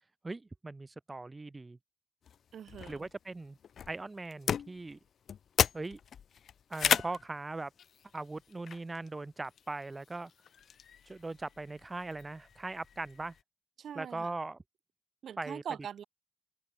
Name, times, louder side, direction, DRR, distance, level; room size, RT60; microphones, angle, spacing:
voice 1, 0.2-1.8 2.9-3.6 3.9-5.0 5.7-6.0 6.7-7.7 8.1-10.3 11.1-13.4 13.9-14.6 15.4-15.6, right 3 dB, 25° right, 1.0 m, -40 dB
sound 1, 2.2-13.4, left 8 dB, 70° left, 0.7 m, -37 dB
voice 2, 2.5-3.1 13.8-14.3 15.2-16.0, right 8 dB, 80° right, 3.2 m, -42 dB
open air
cardioid pair, 105°, 0 cm